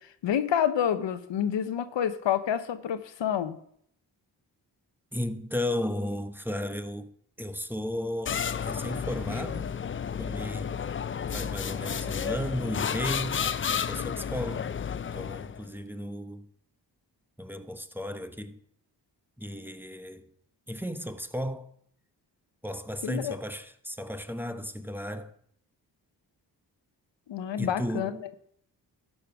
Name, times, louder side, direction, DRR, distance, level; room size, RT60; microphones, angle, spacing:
voice 1, 0.2-3.6 23.0-23.3 27.3-28.1, left 9 dB, 85° left, 0.8 m, -28 dB
voice 2, 5.1-9.7 10.2-10.9 11.3-13.5 13.9-14.8 15.1-16.5 17.4-18.6 19.4-20.3 20.7-21.7 22.6-25.3 27.6-28.2, left 1 dB, 5° right, 0.9 m, -34 dB
sound 1, 8.3-15.7, left 7 dB, 30° left, 0.4 m, -32 dB
12.5 x 5.3 x 6.0 m
cardioid pair, 65°, 43 cm